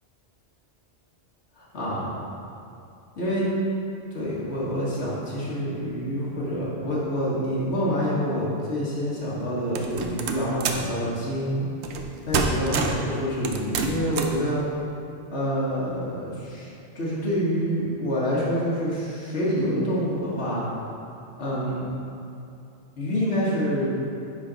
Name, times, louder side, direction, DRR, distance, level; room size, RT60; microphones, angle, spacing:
voice 1, 1.6-2.1 3.2-3.5 4.1-11.6 12.2-14.6 15.3-16.7 17.0-20.7 21.4-21.9 23.0-23.9, equal, 80° left, -7 dB, 1.7 m, -27 dB
sound 1, 9.7-10.9 11.8-12.1 12.3-13.1 13.4-14.4, right 5 dB, 80° right, 0.9 m, -27 dB
9.7 x 3.9 x 3.9 m, 2.6 s
omnidirectional pair, 1.1 m